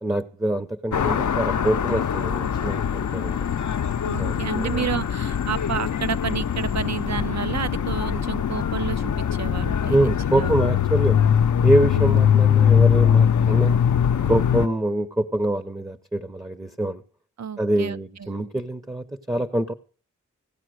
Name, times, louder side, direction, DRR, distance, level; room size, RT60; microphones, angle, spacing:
voice 1, 0.0-3.4 4.2-4.8 9.9-11.2 11.6-13.8 14.2-17.0 17.6-19.7, right 1 dB, 10° right, 12 dB, 0.7 m, -25 dB
sound 1, 0.9-14.7, left 8 dB, 65° left, 0.6 m, -22 dB
voice 2, 4.0-10.0 10.3-10.5 11.9-12.4 17.4-18.5, right 7 dB, 60° right, 14 dB, 0.6 m, -31 dB
15.5 x 8.6 x 6.3 m, 0.42 s
wide cardioid pair, 75°, 31 cm